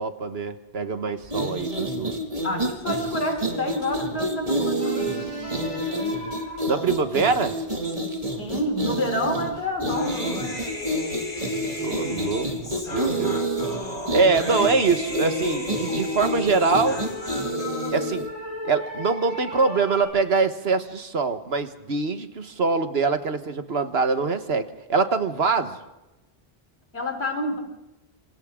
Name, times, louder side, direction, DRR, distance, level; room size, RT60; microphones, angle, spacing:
voice 1, 0.0-2.3 6.7-7.5 11.8-12.5 12.9-13.4 14.1-17.0 17.9-18.3 18.6-25.8, right 4 dB, 80° right, 8 dB, 1.6 m, -24 dB
sound 1, 1.2-18.3, right 1 dB, 35° right, 2.6 m, -29 dB
voice 2, 2.4-5.5 8.4-10.6 13.6-14.1 26.9-27.6, left 1 dB, 80° left, 3 dB, 4.1 m, -29 dB
sound 2, 4.8-8.3 10.0-10.1 10.7-20.1, equal, 30° left, 7.5 m, -37 dB
Human voice, 9.9-17.9, left 2 dB, 55° left, 3.2 m, -36 dB
27.5 x 26.5 x 3.8 m, 0.99 s
omnidirectional pair, 1.0 m